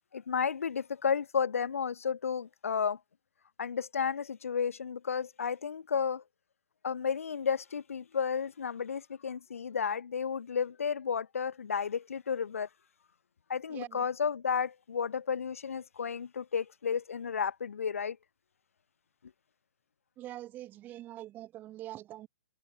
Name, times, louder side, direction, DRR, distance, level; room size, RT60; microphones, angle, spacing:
voice 1, 0.1-3.0 3.6-6.2 6.8-12.7 13.5-18.2, left 6 dB, 70° left, 1.7 m, -32 dB
voice 2, 13.7-14.1 20.2-22.3, right 14 dB, 25° right, 5.7 m, -44 dB
figure-of-eight pair, 125°, 8 cm